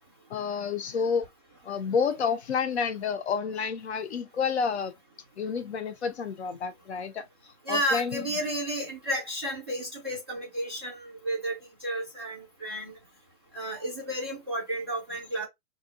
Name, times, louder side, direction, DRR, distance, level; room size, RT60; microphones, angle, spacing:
voice 1, 0.3-1.3 1.6-4.9 5.4-8.3, left 6 dB, 50° left, 0.5 m, -30 dB
voice 2, 7.7-12.9 13.5-15.5, right 1 dB, 20° right, 0.4 m, -32 dB
2.5 x 2.2 x 2.5 m
hypercardioid pair, 150°, 45 cm